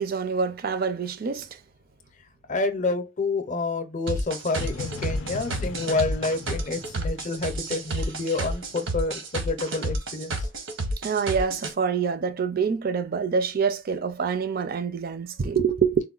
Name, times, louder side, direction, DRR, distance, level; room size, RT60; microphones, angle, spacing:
voice 1, 0.0-1.5 11.0-16.0, right 6 dB, 50° right, 0.4 m, -26 dB
voice 2, 2.5-10.5, left 3 dB, 40° left, 0.6 m, -28 dB
sound 1, 4.1-11.7, right 1 dB, 80° right, 0.8 m, -30 dB
sound 2, 4.6-8.5, left 5 dB, 85° left, 0.4 m, -39 dB
3.8 x 2.1 x 2.3 m
head